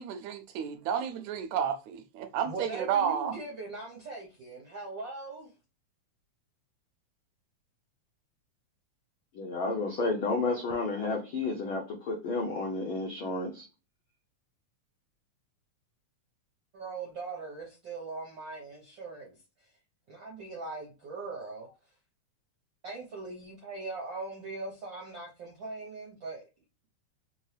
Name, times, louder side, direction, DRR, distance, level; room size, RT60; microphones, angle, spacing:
voice 1, 0.0-3.4, right 8 dB, 80° right, 1.8 m, -31 dB
voice 2, 2.4-5.5 16.7-19.3 20.1-21.7 22.8-26.4, right 3 dB, 65° right, 1.2 m, -40 dB
voice 3, 9.3-13.6, left 3 dB, 80° left, 1.1 m, -31 dB
4.4 x 2.8 x 3.2 m
omnidirectional pair, 3.4 m